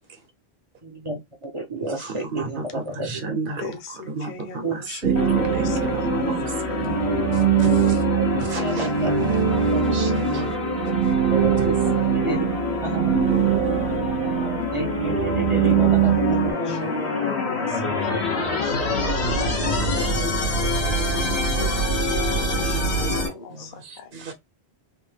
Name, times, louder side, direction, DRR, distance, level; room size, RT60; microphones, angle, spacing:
voice 1, 0.8-3.3 4.6-4.8 8.2-9.1 9.7-10.0 11.3-11.7 12.1-12.4 12.8-13.2 13.4-13.6 14.6-16.9 19.4-19.5 20.1-20.3 23.0-23.1, right 3 dB, 35° right, 0.7 m, -30 dB
voice 2, 2.0-3.6 4.1-6.7 7.3-8.0 8.4-10.5 11.0-11.1 11.6-11.7 13.3-13.6 16.6-17.1 18.8-19.4 19.6-21.4 23.0-24.3, right 4 dB, 55° right, 1.0 m, -35 dB
voice 3, 3.6-6.3 6.7-6.8 15.8-18.8 19.1-19.4 21.5-24.3, left 7 dB, 50° left, 0.7 m, -39 dB
sound 1, 5.0-16.5, right 8 dB, 85° right, 0.9 m, -22 dB
sound 2, 5.2-23.3, left 2 dB, 85° left, 1.4 m, -26 dB
3.3 x 2.1 x 3.2 m
omnidirectional pair, 1.1 m